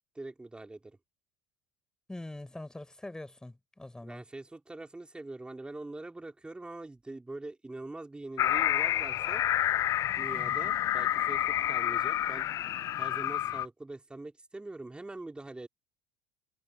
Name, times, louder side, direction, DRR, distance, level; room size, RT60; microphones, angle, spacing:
voice 1, 0.1-1.0 4.0-9.4 10.1-12.5 13.0-15.7, right 2 dB, 10° right, 4.3 m, -43 dB
voice 2, 2.1-4.2 10.3-10.7, left 1 dB, 5° left, 7.0 m, -44 dB
sound 1, 8.4-13.7, left 12 dB, 35° left, 0.4 m, -29 dB
figure-of-eight pair, 65°, 9 cm